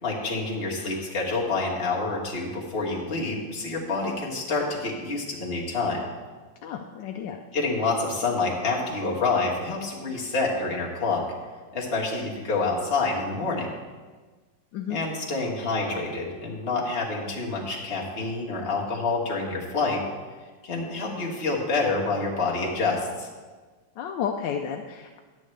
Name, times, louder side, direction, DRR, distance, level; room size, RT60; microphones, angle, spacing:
voice 1, 0.0-6.1 7.5-11.2 11.7-13.7 14.9-20.0 20.6-23.3, left 3 dB, 35° left, -3 dB, 1.5 m, -27 dB
voice 2, 6.6-7.4 14.7-15.0 24.0-25.2, left 7 dB, 75° left, 3 dB, 1.2 m, -32 dB
11.0 x 8.6 x 3.2 m, 1.4 s
omnidirectional pair, 2.0 m